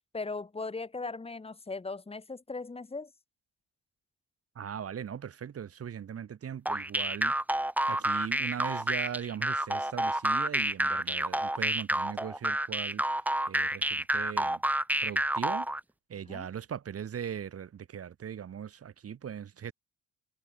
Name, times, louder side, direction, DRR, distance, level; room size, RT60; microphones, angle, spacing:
voice 1, 0.1-3.1 16.3-16.5, left 3 dB, 20° left, 2.0 m, -38 dB
voice 2, 4.6-7.3 7.9-13.0 13.5-14.6 15.0-15.7 16.1-19.7, right 8 dB, 50° right, 2.1 m, -39 dB
sound 1, 6.7-15.8, right 1 dB, 5° right, 1.1 m, -29 dB
cardioid pair, 90°, 30 cm